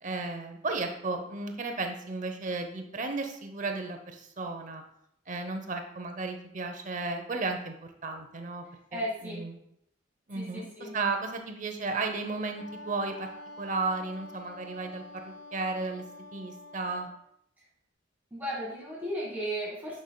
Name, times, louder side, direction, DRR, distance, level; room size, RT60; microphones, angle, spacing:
voice 1, 0.0-4.8 5.3-8.7 8.9-9.6 10.3-13.3 13.6-16.0 16.3-17.1, right 3 dB, 40° right, 5 dB, 0.7 m, -34 dB
voice 2, 8.9-9.5 10.3-11.0 18.3-20.0, equal, 10° right, -5 dB, 1.5 m, -35 dB
Wind instrument woodwind instrument, 12.5-17.2, left 2 dB, 65° left, 0.4 m, -47 dB
9.5 x 5.3 x 2.2 m, 0.75 s
head